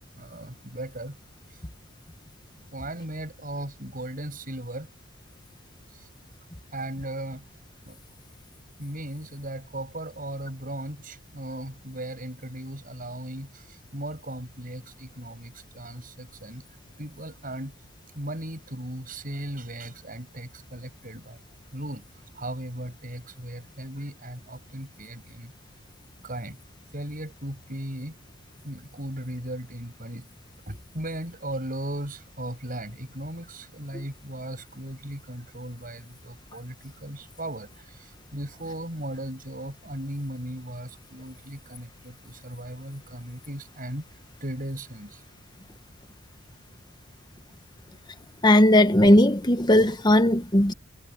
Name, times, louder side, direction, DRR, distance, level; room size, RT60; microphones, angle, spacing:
voice 1, 0.1-1.2 2.7-4.9 5.9-6.1 6.7-7.5 7.8-8.0 8.8-16.6 17.0-17.7 18.1-21.4 21.7-22.0 22.3-25.5 26.2-26.6 26.9-28.2 28.6-30.3 30.7-44.1 44.4-45.2, right 1 dB, 45° right, 7.4 m, -37 dB
voice 2, 48.4-50.7, left 1 dB, 20° left, 1.2 m, -17 dB
head